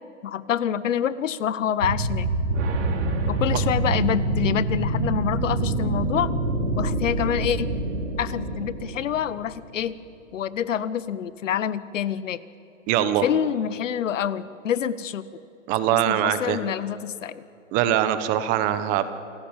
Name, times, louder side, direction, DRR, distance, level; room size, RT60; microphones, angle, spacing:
voice 1, 0.2-2.3 3.3-6.3 6.8-7.7 8.2-9.9 10.3-12.4 13.2-15.2 16.1-17.4, left 9 dB, 75° left, 17 dB, 1.1 m, -27 dB
sound 1, 1.8-9.5, right 2 dB, 70° right, 4.2 m, -26 dB
voice 2, 12.9-13.2 15.7-16.6 17.7-19.1, right 11 dB, 20° right, 12 dB, 1.0 m, -22 dB
28.5 x 15.0 x 8.9 m, 2.6 s
hypercardioid pair, 155°, 38 cm